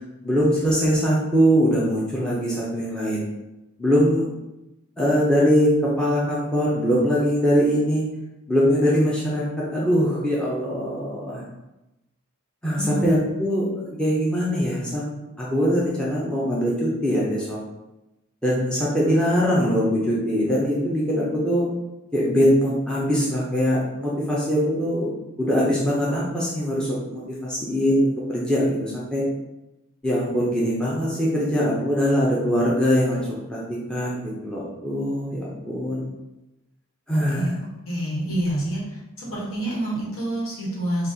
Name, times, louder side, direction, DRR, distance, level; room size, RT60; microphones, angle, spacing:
voice 1, 0.2-3.2 3.8-4.3 5.0-8.0 8.5-11.4 12.6-15.1 15.4-17.6 18.4-21.7 22.1-25.1 25.4-29.2 30.0-36.1 37.1-37.6, equal, 5° left, -6 dB, 0.6 m, -22 dB
voice 2, 12.7-13.2 37.3-38.8 39.2-41.1, right 1 dB, 70° left, -5 dB, 1.4 m, -27 dB
4.0 x 2.4 x 3.9 m, 0.97 s
head